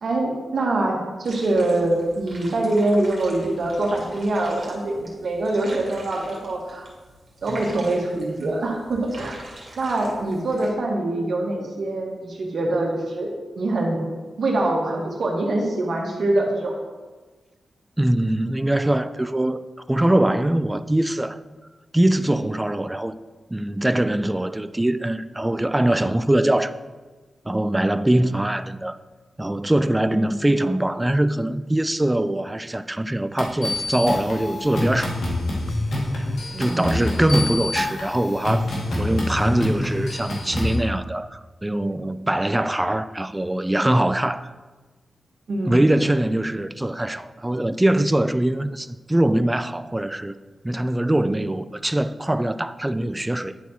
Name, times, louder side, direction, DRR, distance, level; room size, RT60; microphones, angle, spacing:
voice 1, 0.0-6.9 7.4-9.4 9.8-14.0 14.4-16.7 30.1-30.4 36.5-37.0 45.5-45.8, right 2 dB, 65° right, 1.5 m, -24 dB
sound 1, 1.2-10.7, right 1 dB, 50° right, 2.2 m, -44 dB
voice 2, 18.0-21.4 21.9-23.2 23.5-26.8 27.5-29.0 29.4-35.1 36.6-44.5 45.7-50.4 50.6-53.6, right 1 dB, 15° right, 0.3 m, -22 dB
sound 2, 33.4-40.8, left 1 dB, 75° left, 1.8 m, -26 dB
10.5 x 4.2 x 4.3 m
wide cardioid pair, 95°, 0 cm